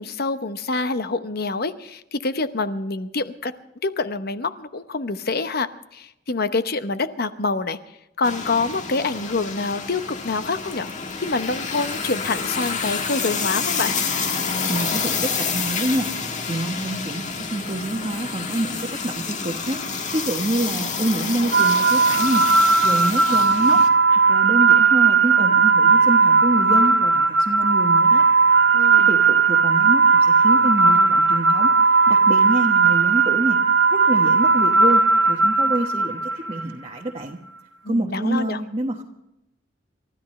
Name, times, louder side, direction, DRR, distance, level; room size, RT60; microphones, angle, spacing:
voice 1, 0.0-3.5 3.8-7.8 8.2-10.9 11.2-13.9 28.7-29.1 37.8-38.6, left 3 dB, 55° left, 10 dB, 1.0 m, -26 dB
sound 1, 8.2-23.9, left 5 dB, 40° left, 1.5 m, -28 dB
voice 2, 14.4-16.1 16.5-19.8 20.1-22.4 22.8-23.8 24.1-28.3 29.1-33.6 33.9-37.4 37.9-39.0, right 1 dB, 30° right, 0 dB, 1.2 m, -26 dB
sound 2, 21.5-36.6, right 4 dB, 75° right, 1.0 m, -17 dB
29.5 x 13.5 x 3.2 m, 0.87 s
head